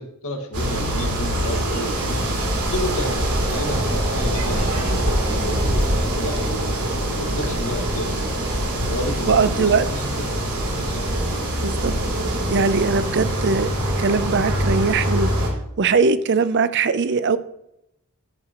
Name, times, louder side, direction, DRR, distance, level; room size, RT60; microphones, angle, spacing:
voice 1, 0.0-2.2 2.7-3.2 3.5-6.8 7.2-8.3 8.6-10.2 10.7-11.1, equal, 80° left, 1.8 m, -31 dB
sound 1, 0.5-15.5, right 1 dB, 85° right, 3.1 m, -23 dB
voice 2, 9.3-9.9 11.6-12.0 12.5-15.3 15.8-17.4, right 4 dB, 50° right, 0.5 m, -20 dB
10.5 x 9.6 x 3.0 m
head